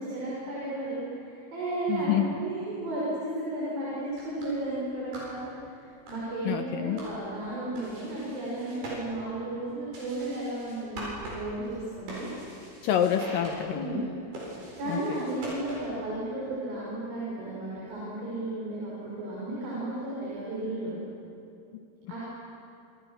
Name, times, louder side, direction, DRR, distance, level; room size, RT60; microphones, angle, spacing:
voice 1, 0.0-12.3 13.7-14.1 14.8-21.0 22.1-22.2, right 2 dB, 60° right, -7 dB, 7.8 m, -34 dB
voice 2, 1.9-2.4 6.5-7.0 12.8-14.1 14.9-15.0 21.7-21.8, left 9 dB, 75° left, 6 dB, 2.2 m, -27 dB
sound 1, 4.0-16.1, right 1 dB, 85° right, 10.5 m, -44 dB
29.5 x 27.5 x 6.4 m, 2.6 s
omnidirectional pair, 4.9 m